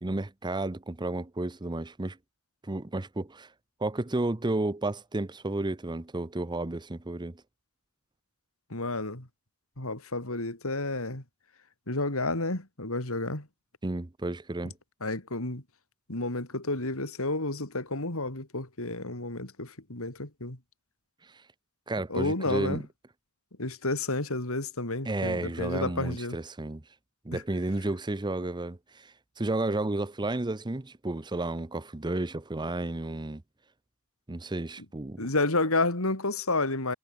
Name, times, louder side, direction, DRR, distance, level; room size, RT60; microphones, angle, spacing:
voice 1, 0.0-2.2 2.6-3.5 3.8-7.4 13.8-14.7 21.9-22.8 25.0-26.8 27.2-33.4 34.3-35.2, right 2 dB, 20° right, 0.7 m, -32 dB
voice 2, 8.7-9.3 9.8-11.2 11.9-13.5 15.0-15.6 16.1-20.6 22.1-22.8 23.6-26.4 27.3-27.4 35.2-37.0, left 2 dB, 70° left, 4.1 m, -30 dB
head